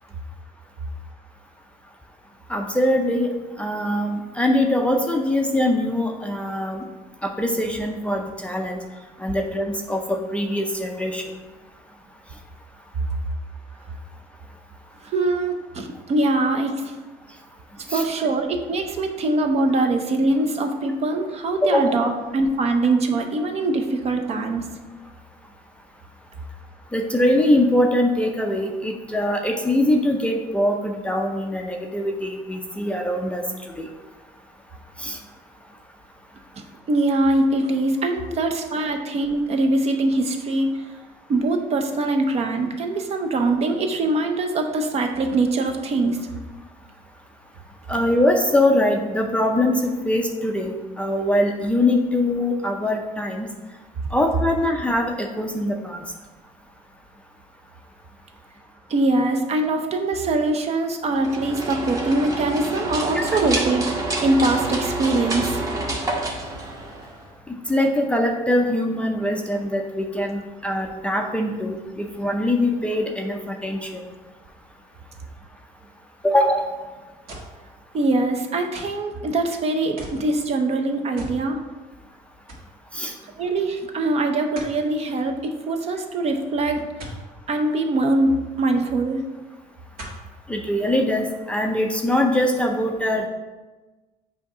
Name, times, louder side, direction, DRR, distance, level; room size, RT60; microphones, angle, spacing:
voice 1, 2.5-3.3 3.6-6.8 7.2-8.8 9.2-11.2 17.9-18.0 21.6-21.9 26.9-33.4 33.8-33.9 35.0-35.2 47.9-53.5 54.1-56.0 63.1-63.4 67.5-74.0 76.2-76.7 82.9-83.1 90.5-93.3, left 1 dB, 5° left, 2 dB, 0.5 m, -22 dB
voice 2, 15.0-17.0 17.8-24.7 36.6-40.8 41.3-46.2 58.9-63.8 64.2-65.6 77.9-81.6 83.4-86.9 87.5-89.2, right 2 dB, 40° right, 5 dB, 0.6 m, -23 dB
sound 1, 61.1-67.3, right 2 dB, 20° right, 1.0 m, -28 dB
sound 2, 77.3-77.6 78.7-79.1 80.0-80.3 81.2-81.4 81.8-81.9 82.5-82.7 84.6-84.8 87.0-87.2 88.7-88.8 90.0-90.3 91.0-91.1, right 1 dB, 70° right, 1.8 m, -38 dB
7.8 x 2.8 x 4.8 m, 1.2 s
cardioid pair, 145°, 16 cm